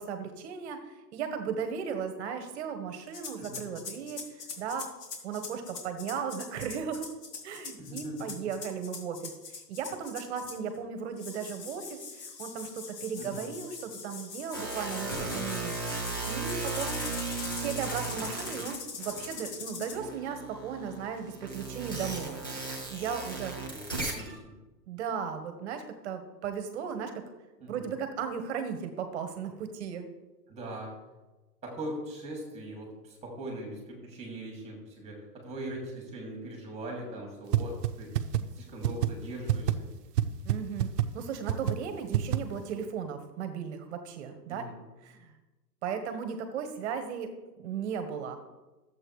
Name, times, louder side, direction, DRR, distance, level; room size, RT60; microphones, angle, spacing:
voice 1, 0.0-4.9 5.2-7.1 7.4-16.0 16.3-17.0 17.5-22.4 22.9-23.5 24.9-27.2 27.7-30.1 40.4-44.6 45.0-45.3 45.8-48.4, right 7 dB, 40° right, 7 dB, 1.3 m, -36 dB
sound 1, 3.1-10.8 11.2-20.0, left 5 dB, 65° left, 2.5 m, -42 dB
voice 2, 3.4-3.7 7.8-8.4 13.2-13.4 23.7-24.5 27.6-27.9 30.5-30.9 31.6-38.2 38.6-39.9 44.5-44.8, right 1 dB, 15° right, 0 dB, 2.5 m, -41 dB
sound 2, 14.5-19.5 19.9-24.4, right 3 dB, 15° left, 0.3 m, -36 dB
sound 3, 37.5-37.6 37.8-37.9 38.1-38.4 38.8-39.1 39.5-39.7 40.2-40.3 40.5-40.6 40.8-41.0 41.5-41.7 42.1-42.4, right 13 dB, 70° right, 0.8 m, -24 dB
13.5 x 7.7 x 3.2 m, 1.1 s
hypercardioid pair, 145°, 50 cm